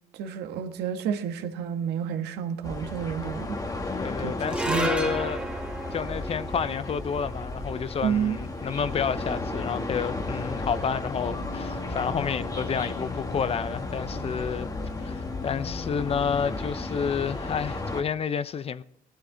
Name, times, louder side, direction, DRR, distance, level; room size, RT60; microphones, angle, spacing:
voice 1, 0.1-3.6 4.2-4.3 4.7-5.1 8.0-8.4, right 8 dB, 80° right, 1.5 m, -30 dB
sound 1, 2.6-18.0, left 2 dB, 20° left, 1.5 m, -34 dB
voice 2, 3.9-5.5 5.9-14.7 15.0-18.8, left 7 dB, 35° left, 0.6 m, -30 dB
sound 2, 4.4-10.9, right 2 dB, 5° right, 1.8 m, -35 dB
sound 3, 11.1-16.4, left 4 dB, 70° left, 1.9 m, -39 dB
17.0 x 11.5 x 3.9 m
cardioid pair, 110°, 17 cm